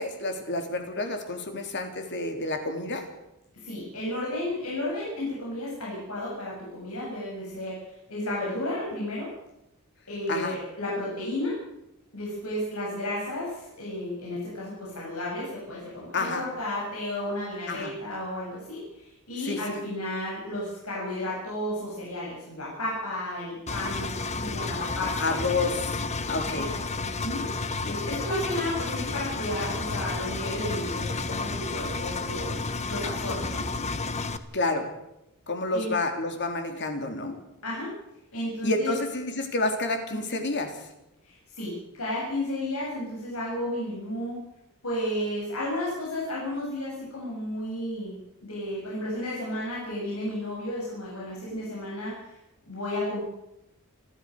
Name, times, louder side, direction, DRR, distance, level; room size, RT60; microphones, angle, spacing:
voice 1, 0.0-3.0 10.3-10.5 16.1-16.5 17.7-17.9 19.5-19.8 25.2-26.0 26.3-26.7 34.5-34.9 35.5-37.4 38.6-40.7, left 2 dB, 55° left, 5 dB, 3.6 m, -29 dB
voice 2, 3.6-9.3 10.1-11.5 12.1-25.7 26.5-26.6 26.9-27.4 27.8-32.6 32.9-33.6 35.7-35.9 37.6-37.9 38.3-38.9 41.2-44.4 44.8-52.3 52.6-53.2, left 1 dB, 75° left, -5 dB, 7.9 m, -33 dB
Engine, 23.7-34.4, left 3 dB, 30° left, 1.2 m, -31 dB
29.5 x 13.0 x 6.8 m, 0.87 s
head